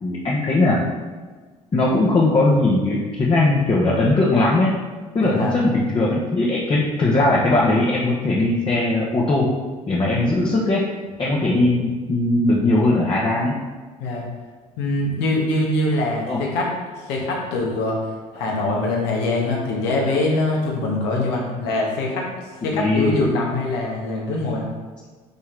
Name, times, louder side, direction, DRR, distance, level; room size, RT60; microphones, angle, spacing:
voice 1, 0.0-0.8 1.7-4.7 5.1-9.5 9.9-10.8 11.2-13.5 16.2-16.4 22.7-23.1, left 2 dB, 30° left, -4 dB, 1.2 m, -19 dB
voice 2, 5.2-5.5 10.1-10.2 14.0-14.2 14.8-16.7 17.1-18.0 18.3-22.3 22.6-24.7, left 2 dB, 70° left, -2 dB, 1.7 m, -23 dB
8.5 x 3.6 x 3.5 m, 1.4 s
hypercardioid pair, 65°, 18 cm